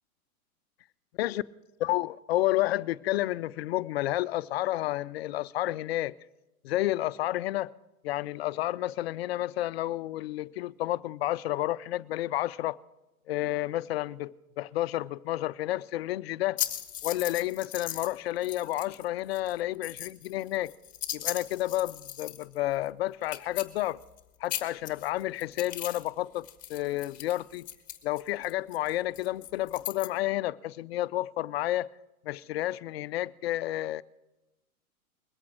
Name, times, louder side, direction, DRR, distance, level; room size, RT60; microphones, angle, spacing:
voice 1, 1.8-6.1 6.6-7.7 8.0-12.8 13.3-16.6 17.0-20.7 21.1-24.0 24.4-27.7 28.0-31.9 32.2-34.0, left 15 dB, 45° left, 0.4 m, -30 dB
sound 1, 16.6-18.2 18.4-19.0 19.3-22.6 22.9-23.0 23.2-24.2 24.4-26.1 26.4-30.1, left 12 dB, 20° left, 1.2 m, -37 dB
21.5 x 8.5 x 4.6 m
hypercardioid pair, 140°, 44 cm